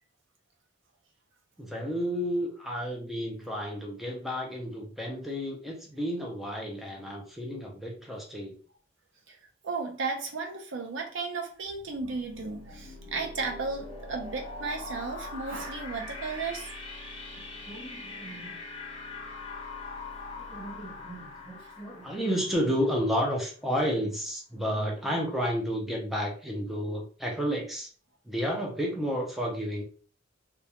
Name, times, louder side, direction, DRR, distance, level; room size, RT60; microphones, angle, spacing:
voice 1, 1.6-8.6 17.4-18.6 20.4-27.9 28.3-29.8, equal, ahead, 0.5 m, -32 dB
voice 2, 9.6-16.7 21.5-21.6, right 4 dB, 65° right, 0.6 m, -34 dB
sound 1, 11.6-23.3, left 3 dB, 25° left, 0.8 m, -42 dB
2.3 x 2.2 x 2.8 m
head